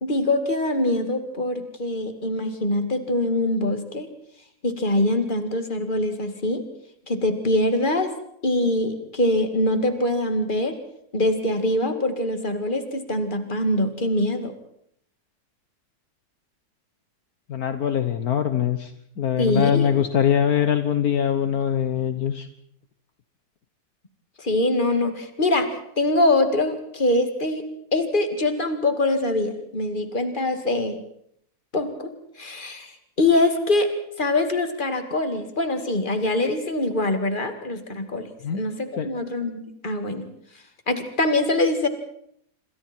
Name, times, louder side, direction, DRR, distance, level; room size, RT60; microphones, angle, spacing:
voice 1, 0.0-4.1 4.6-6.7 7.1-8.1 8.4-10.8 11.1-14.5 19.4-19.9 24.4-27.6 27.9-31.0 31.7-32.1 32.4-32.9 33.2-33.9 34.2-40.3 40.9-41.9, left 2 dB, 30° left, 7 dB, 2.4 m, -23 dB
voice 2, 17.5-18.9 19.2-22.5 38.4-38.6 39.0-39.1, left 9 dB, 65° left, 9 dB, 1.6 m, -22 dB
27.5 x 25.5 x 4.5 m, 0.71 s
omnidirectional pair, 1.7 m